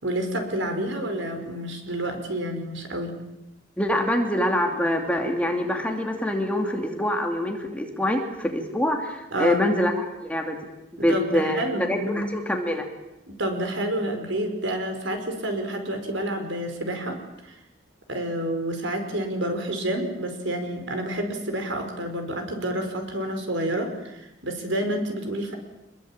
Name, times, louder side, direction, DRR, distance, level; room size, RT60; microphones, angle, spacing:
voice 1, 0.0-3.1 9.3-9.6 11.0-12.2 13.3-17.6 18.1-25.6, right 1 dB, 75° right, 5 dB, 5.1 m, -29 dB
voice 2, 3.8-10.6 10.9-12.9, left 1 dB, 5° left, 2 dB, 2.8 m, -25 dB
26.0 x 22.0 x 8.9 m, 0.90 s
head